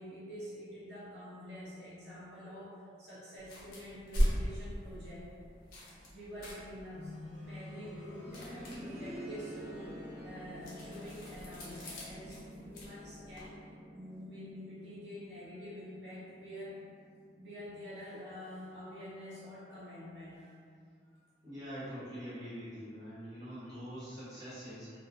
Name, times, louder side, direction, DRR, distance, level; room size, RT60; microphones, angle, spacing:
voice 1, 0.0-5.3 6.1-7.1 7.4-13.6 13.9-16.8 17.4-20.6 21.0-21.2 23.5-23.8 24.3-24.5, left 1 dB, 85° right, -10 dB, 0.8 m, -47 dB
sound 1, 3.4-13.5, equal, 55° left, 0.6 m, -39 dB
sound 2, 6.9-17.7 18.0-18.1 19.0-19.1, equal, 5° right, 0.7 m, -48 dB
voice 2, 21.4-24.9, equal, 20° right, -15 dB, 1.1 m, -44 dB
2.4 x 2.1 x 2.6 m, 2.3 s
head